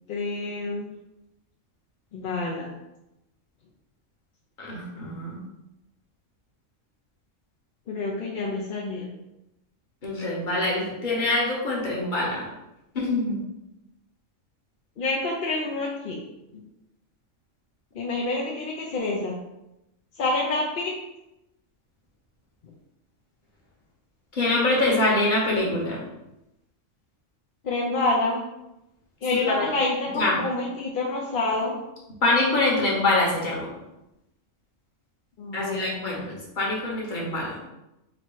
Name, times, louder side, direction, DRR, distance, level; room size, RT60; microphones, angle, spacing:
voice 1, 0.1-0.9 2.1-2.7 7.9-9.1 15.0-16.2 17.9-19.4 20.2-20.9 27.6-28.4 29.2-31.7 35.4-36.3, left 2 dB, 55° left, -3 dB, 0.6 m, -28 dB
voice 2, 4.6-5.4 10.0-12.5 12.9-13.4 24.3-26.0 29.3-29.7 30.1-30.4 32.2-33.7 35.5-37.6, left 2 dB, 40° left, -4 dB, 1.1 m, -25 dB
3.1 x 2.8 x 4.5 m, 0.91 s
omnidirectional pair, 1.4 m